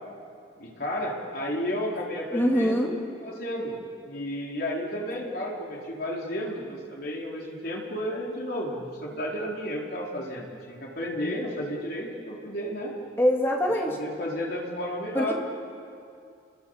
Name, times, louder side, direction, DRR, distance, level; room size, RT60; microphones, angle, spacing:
voice 1, 0.6-2.9 3.2-3.7 4.0-12.9 13.8-15.3, equal, 55° left, -3 dB, 4.7 m, -32 dB
voice 2, 2.3-2.9 13.2-13.9 15.1-15.3, equal, 15° left, -1 dB, 2.9 m, -23 dB
29.5 x 21.0 x 8.3 m, 2.5 s
head